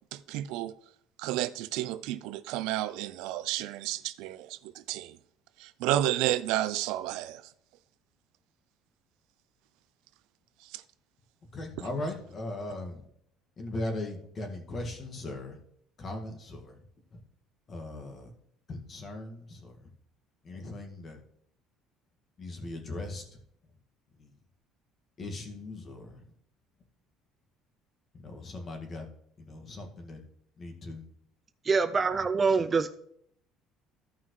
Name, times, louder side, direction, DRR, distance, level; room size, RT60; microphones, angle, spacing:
voice 1, 0.1-0.7 1.2-5.2 5.6-7.4 10.7-10.8, right 14 dB, 80° right, 0.4 m, -31 dB
voice 2, 11.5-13.0 13.6-15.6 16.0-16.8 17.1-17.2 17.7-18.3 18.7-19.9 20.4-21.2 22.4-23.4 24.2-24.3 25.2-26.2 28.2-29.1 29.4-30.2 30.6-31.0, left 2 dB, 35° left, 1.9 m, -38 dB
voice 3, 31.6-32.9, right 4 dB, 30° right, 0.4 m, -25 dB
14.0 x 5.6 x 3.2 m
cardioid pair, 115°, 0 cm